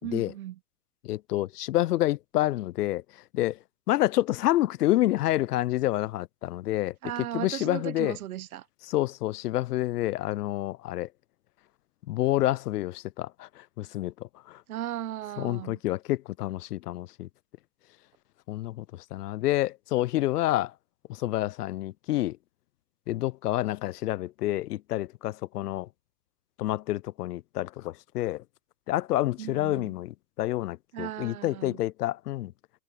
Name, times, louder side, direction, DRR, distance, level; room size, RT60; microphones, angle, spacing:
voice 1, 0.0-0.6 7.0-8.6 14.7-15.8 29.4-29.9 30.9-31.8, right 12 dB, 60° right, 1.4 m, -36 dB
voice 2, 1.0-3.0 3.3-3.6 3.9-6.9 7.3-8.2 8.9-11.1 12.1-14.1 14.5-14.6 15.4-17.3 18.5-20.7 21.1-22.4 23.1-25.9 26.6-28.4 28.9-32.5, left 15 dB, 70° left, 0.6 m, -28 dB
hypercardioid pair, 160°, 49 cm